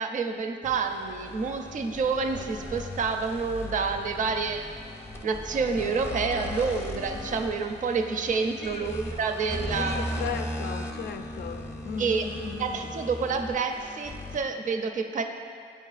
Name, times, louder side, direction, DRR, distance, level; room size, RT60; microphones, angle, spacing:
voice 1, 0.0-4.7 5.2-10.1 12.0-12.3 12.6-15.2, right 5 dB, 40° right, 6 dB, 0.5 m, -28 dB
sound 1, 0.6-14.5, left 1 dB, 10° left, 0.7 m, -37 dB
voice 2, 8.6-9.0 9.7-12.9, left 7 dB, 55° left, 8 dB, 0.4 m, -37 dB
10.0 x 4.3 x 2.4 m, 2.2 s
cardioid pair, 90°, 20 cm